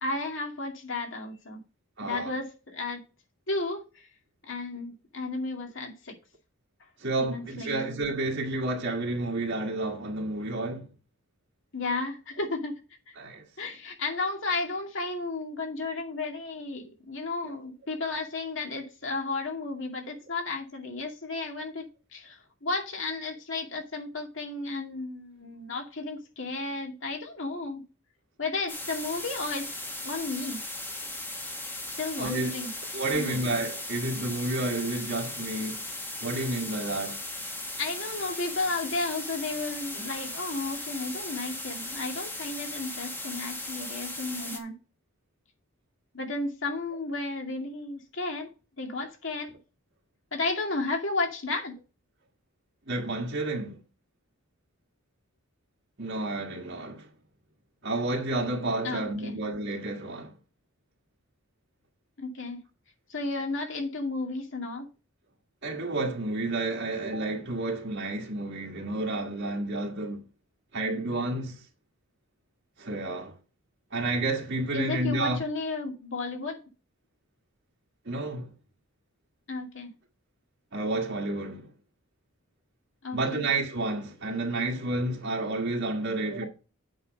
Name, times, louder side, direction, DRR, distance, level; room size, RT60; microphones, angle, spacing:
voice 1, 0.0-1.6 2.0-3.0 3.5-4.1 4.5-6.1 7.2-7.9 11.7-12.8 13.1-13.2 13.6-27.8 28.4-29.7 30.0-30.6 32.0-32.7 33.1-33.5 37.8-44.7 46.1-48.5 48.8-49.5 50.3-51.7 58.8-59.4 62.2-62.6 63.1-64.9 74.7-76.6 79.5-79.9 83.0-83.4, left 3 dB, 60° left, 2.4 m, -33 dB
voice 2, 2.0-2.4 7.0-10.9 13.2-13.4 17.4-17.6 32.2-32.7 32.9-35.8 36.2-37.2 52.9-53.8 56.0-57.1 57.8-60.3 65.6-70.2 70.7-71.6 72.8-73.3 73.9-75.4 78.1-78.5 80.7-81.7 83.1-86.5, right 2 dB, 55° right, 1.7 m, -30 dB
sound 1, 28.7-44.6, left 2 dB, 10° left, 1.3 m, -37 dB
8.4 x 5.5 x 5.4 m
head